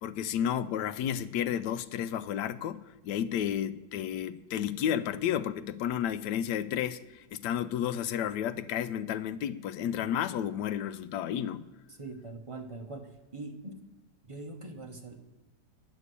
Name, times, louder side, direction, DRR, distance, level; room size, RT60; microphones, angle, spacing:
voice 1, 0.0-11.7, left 9 dB, 85° left, 1.2 m, -32 dB
voice 2, 12.0-13.8 14.2-15.2, right 2 dB, 35° right, 0.5 m, -42 dB
9.4 x 7.0 x 8.2 m
omnidirectional pair, 1.8 m